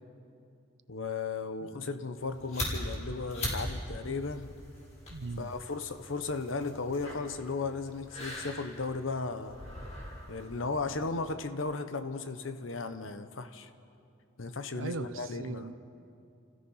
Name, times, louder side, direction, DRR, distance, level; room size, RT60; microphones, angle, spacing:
voice 1, 0.9-4.5 5.4-9.6 10.3-13.7 14.4-15.7, left 3 dB, 80° left, 9 dB, 0.9 m, -35 dB
sound 1, 2.2-11.3, left 1 dB, 35° left, 5.1 m, -41 dB
voice 2, 5.1-5.5 14.7-15.7, right 3 dB, 90° right, 13 dB, 0.8 m, -39 dB
29.0 x 15.5 x 5.7 m, 2.5 s
head